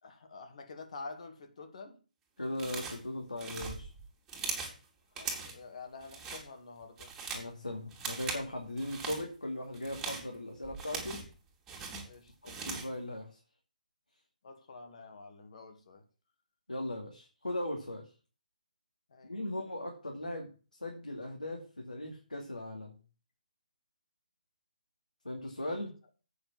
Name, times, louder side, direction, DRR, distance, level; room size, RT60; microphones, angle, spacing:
voice 1, 0.0-2.0 5.1-7.1 12.0-12.5 14.4-16.1 19.1-19.4, left 4 dB, 55° left, 2.3 m, -48 dB
voice 2, 2.4-3.9 7.3-11.2 12.4-13.4 16.7-18.1 19.2-20.5 20.8-23.0 25.2-25.9, left 1 dB, 80° left, 2.6 m, -38 dB
sound 1, 2.6-3.1 3.4-4.8 5.2-5.6 6.0-6.4 6.8-7.5 7.9-8.5 8.8-9.2 9.7-11.3 11.7-13.0, right 4 dB, 10° right, 2.9 m, -40 dB
8.4 x 7.0 x 7.5 m
figure-of-eight pair, 135°, 4 cm